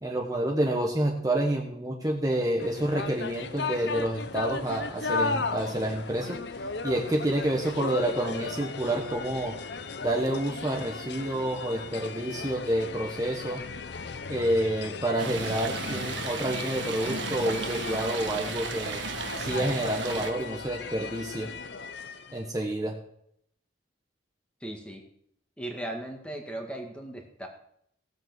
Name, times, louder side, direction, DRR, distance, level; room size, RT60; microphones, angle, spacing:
voice 1, 0.0-6.4 6.8-9.6 10.0-13.6 14.3-19.0 19.4-21.5 22.3-23.0, right 1 dB, 20° right, 0 dB, 1.3 m, -28 dB
sound 1, 2.6-22.4, left 4 dB, 55° left, 0.8 m, -36 dB
Stream, 15.2-20.3, right 4 dB, 65° right, 1.4 m, -34 dB
voice 2, 24.6-25.0 25.6-27.5, right 1 dB, 5° left, 2 dB, 2.0 m, -37 dB
16.5 x 8.0 x 6.2 m, 0.71 s
head